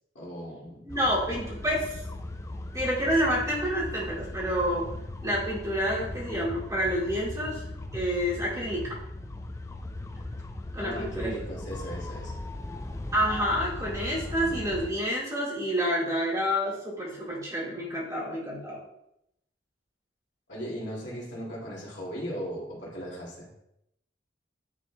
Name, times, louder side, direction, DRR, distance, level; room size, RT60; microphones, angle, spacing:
voice 1, 0.1-1.0 10.8-12.3 20.5-23.5, equal, 70° left, -4 dB, 2.2 m, -37 dB
voice 2, 0.8-2.0 2.7-4.9 5.2-7.6 7.9-8.9 10.7-11.3 13.1-18.8, equal, 20° right, -8 dB, 2.4 m, -28 dB
sound 1, 0.9-14.9, left 2 dB, 15° left, 0.3 m, -38 dB
9.9 x 4.2 x 2.2 m, 0.80 s
head